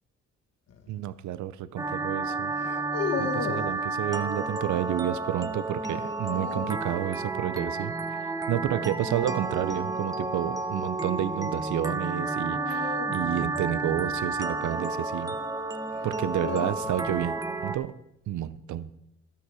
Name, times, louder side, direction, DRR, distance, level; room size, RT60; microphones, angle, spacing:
sound 1, 0.7-1.0 2.5-3.8 5.9-6.9 9.3-9.7 12.5-14.9 15.9-17.2, left 6 dB, 55° left, 1.3 m, -36 dB
voice 1, 0.9-2.5 3.2-7.9 8.5-15.4 16.0-18.0 18.3-18.9, right 12 dB, 70° right, 0.6 m, -30 dB
sound 2, 1.8-17.8, right 3 dB, 10° right, 0.7 m, -31 dB
16.0 x 5.7 x 4.9 m
cardioid pair, 90°, 30 cm